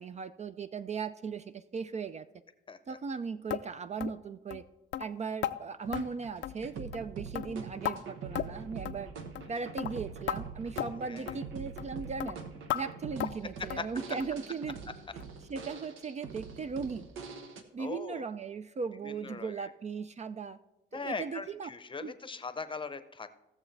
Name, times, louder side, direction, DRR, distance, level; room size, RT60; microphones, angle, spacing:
voice 1, 0.0-2.3 2.9-4.6 5.0-9.1 9.5-12.4 12.7-14.8 15.5-17.1 17.7-20.6 20.9-21.7 22.0-22.1, right 5 dB, 35° right, 12 dB, 0.4 m, -38 dB
voice 2, 2.7-3.0 9.5-9.6 11.1-11.3 13.8-13.9 17.8-18.3 19.0-19.7 20.9-23.3, left 4 dB, 25° left, 11 dB, 0.7 m, -40 dB
sound 1, 3.5-3.7 4.0-4.2 4.5-4.6 4.9-5.1 5.4-5.6 5.9-6.1 6.4-6.7 6.9-7.1 7.4-8.0 8.4-8.6 8.9-9.0 9.4-9.5 9.8-9.9 10.3-10.4 10.8-10.9 11.3-11.4 11.8-11.9 12.2-12.3 12.7-12.8 13.2-13.4 13.7-13.9 14.2-14.4 14.7-14.8 15.2-15.3 15.7-15.8, left 12 dB, 70° left, 0.5 m, -35 dB
sound 2, 5.8-17.6, right 5 dB, 85° right, 1.1 m, -44 dB
16.5 x 7.0 x 3.3 m, 0.98 s
cardioid pair, 90°, 20 cm